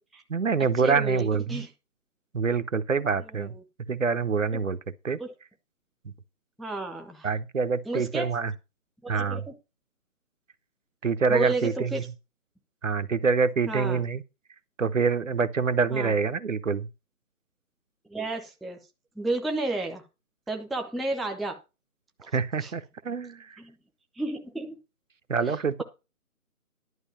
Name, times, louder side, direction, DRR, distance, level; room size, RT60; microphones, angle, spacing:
voice 1, 0.3-1.7 2.3-3.5 3.9-4.8 5.0-5.2 7.2-8.5 9.1-9.4 11.0-12.0 12.8-14.2 14.8-16.9 22.3-23.6 25.3-25.8, right 5 dB, 60° right, 0.7 m, -26 dB
voice 2, 0.8-1.7 3.2-3.6 5.2-5.3 6.6-7.3 7.9-8.3 9.0-9.5 11.3-12.1 13.7-14.0 15.9-16.1 18.1-18.8 19.2-20.0 20.5-21.6 22.2-22.3 22.6-22.7 23.6-23.7 24.1-24.8 25.5-25.8, right 2 dB, ahead, 0.5 m, -32 dB
11.0 x 5.0 x 7.1 m
hypercardioid pair, 180°, 45 cm